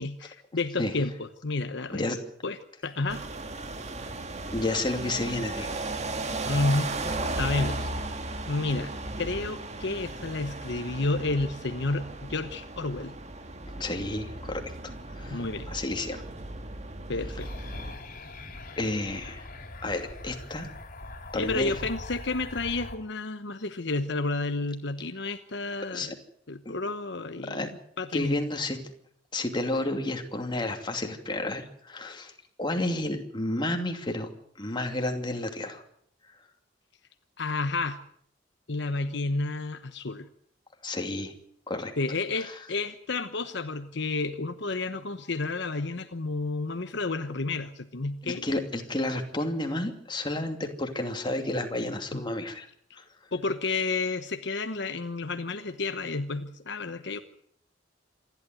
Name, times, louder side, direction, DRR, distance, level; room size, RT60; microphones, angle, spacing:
voice 1, 0.0-2.1 2.4-3.2 6.4-6.9 7.3-8.1 8.5-8.9 9.2-13.1 15.3-15.7 17.1-17.5 21.3-26.1 26.5-27.7 28.0-28.4 37.4-38.0 38.7-40.3 42.0-48.4 52.1-52.2 53.3-57.2, left 3 dB, 65° left, 9 dB, 1.1 m, -31 dB
sound 1, 3.1-17.9, right 2 dB, 35° right, 1.9 m, -36 dB
voice 2, 4.5-5.8 13.8-14.6 15.1-16.2 18.8-19.5 19.8-20.7 21.3-21.7 25.9-26.1 26.6-26.7 27.5-27.7 28.1-28.8 29.3-32.3 32.6-34.3 34.6-35.8 40.8-41.3 41.7-41.9 42.4-42.6 48.2-52.7 53.0-53.1, left 1 dB, 25° left, 4 dB, 2.7 m, -31 dB
sound 2, 17.4-23.0, left 2 dB, 45° left, 3.6 m, -42 dB
27.0 x 12.0 x 9.3 m, 0.67 s
head